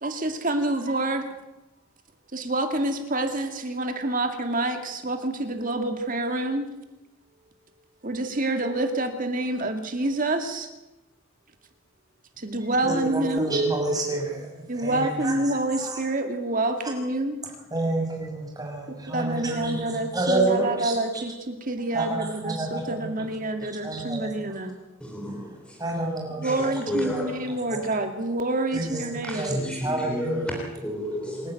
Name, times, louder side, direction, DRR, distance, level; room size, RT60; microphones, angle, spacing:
voice 1, 0.0-1.3 2.3-6.7 8.0-10.7 12.4-13.5 14.7-17.4 18.9-24.7 26.4-29.5, right 2 dB, 40° right, 6 dB, 2.2 m, -27 dB
voice 2, 12.8-14.5 14.8-15.3 15.8-16.0 17.7-20.9 21.9-23.1 23.8-24.3 25.8-26.8 27.1-27.2 28.7-29.0 29.3-29.6 29.8-30.4 31.4-31.5, right 2 dB, 20° right, -1 dB, 6.2 m, -28 dB
voice 3, 25.0-26.1 26.4-27.8 29.2-31.5, equal, 5° left, 0 dB, 3.0 m, -32 dB
27.0 x 11.5 x 9.2 m, 1.0 s
head